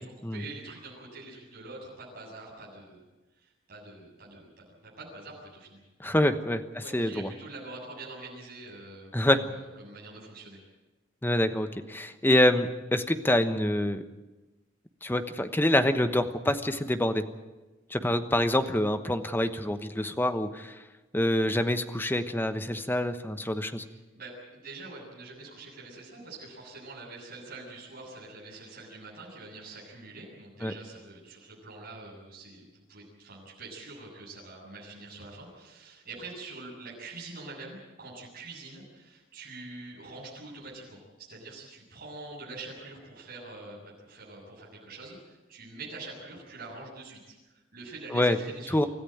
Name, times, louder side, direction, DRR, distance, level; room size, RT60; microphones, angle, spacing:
voice 1, 0.3-3.0 3.3-5.8 6.8-10.6 23.9-48.9, right 3 dB, 50° right, -5 dB, 7.7 m, -45 dB
voice 2, 6.0-6.6 6.9-7.3 9.1-9.4 11.2-14.0 15.0-17.2 17.9-20.8 21.1-23.8 30.6-30.7 48.1-48.4 48.7-48.9, left 1 dB, 10° left, 9 dB, 1.1 m, -26 dB
25.5 x 14.0 x 9.3 m, 1.1 s
head